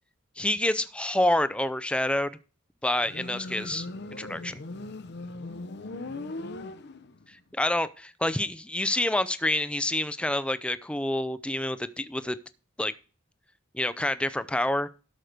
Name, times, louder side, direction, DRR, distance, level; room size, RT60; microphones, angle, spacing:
voice 1, 0.4-2.3 2.8-3.9 4.2-4.6 7.3-12.4 12.8-12.9 13.7-14.9, left 1 dB, 5° left, 13 dB, 0.5 m, -27 dB
Motorcycle, 3.0-7.3, left 2 dB, 55° left, 0.7 m, -39 dB
12.0 x 6.3 x 5.1 m, 0.36 s
head